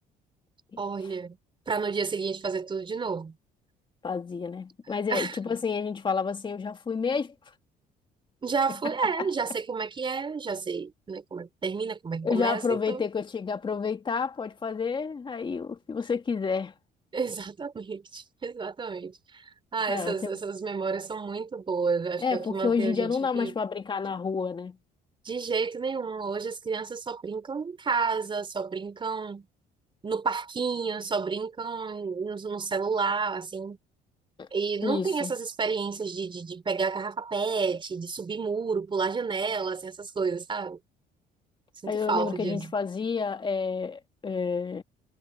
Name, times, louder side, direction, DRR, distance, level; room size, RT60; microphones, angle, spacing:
voice 1, 0.8-1.4 1.7-3.3 5.1-5.4 8.4-13.0 17.1-19.4 19.7-23.5 25.2-29.5 30.0-33.8 34.5-40.8 41.8-42.7, right 5 dB, 30° right, 3.9 m, -30 dB
voice 2, 4.0-7.3 12.2-16.7 19.9-20.3 22.2-24.8 34.4-34.5 34.8-35.3 41.9-44.8, left 5 dB, 30° left, 2.1 m, -29 dB
cardioid pair, 110°, 17 cm